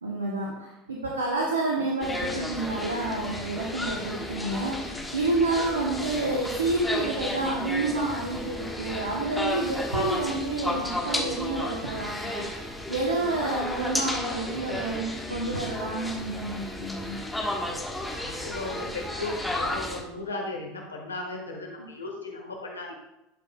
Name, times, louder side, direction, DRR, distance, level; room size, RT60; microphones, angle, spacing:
voice 1, 0.0-17.2 21.8-21.9, right 2 dB, 85° right, -1 dB, 0.8 m, -29 dB
sound 1, 2.0-20.0, left 1 dB, 5° left, 1.2 m, -33 dB
voice 2, 18.2-22.9, left 2 dB, 90° left, 1 dB, 1.3 m, -36 dB
11.0 x 5.3 x 2.2 m, 0.95 s
hypercardioid pair, 75°, 0 cm